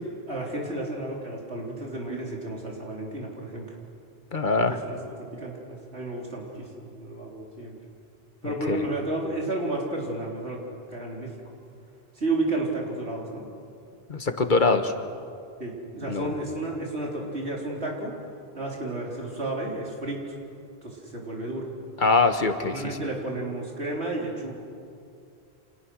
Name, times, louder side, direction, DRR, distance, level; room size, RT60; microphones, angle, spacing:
voice 1, 0.0-3.6 4.7-7.8 8.4-10.6 10.9-11.3 12.1-13.5 15.6-18.2 18.5-20.4 20.8-21.7 22.7-24.6, right 2 dB, 90° right, -2 dB, 4.3 m, -32 dB
voice 2, 4.3-4.8 8.4-8.8 14.1-14.9 16.1-16.3 22.0-23.0, left 3 dB, 50° left, 8 dB, 1.5 m, -23 dB
29.0 x 27.0 x 6.4 m, 2.5 s
omnidirectional pair, 1.1 m